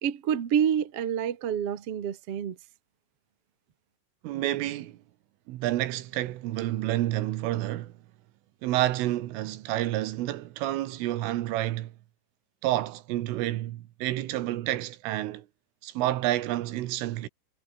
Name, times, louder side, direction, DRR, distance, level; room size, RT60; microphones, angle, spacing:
voice 1, 0.0-2.5, right 8 dB, 55° right, 1.6 m, -28 dB
voice 2, 4.2-5.0 5.5-7.9 8.6-11.9 12.6-15.5 15.8-17.3, right 15 dB, 75° right, 3.8 m, -29 dB
omnidirectional pair, 5.9 m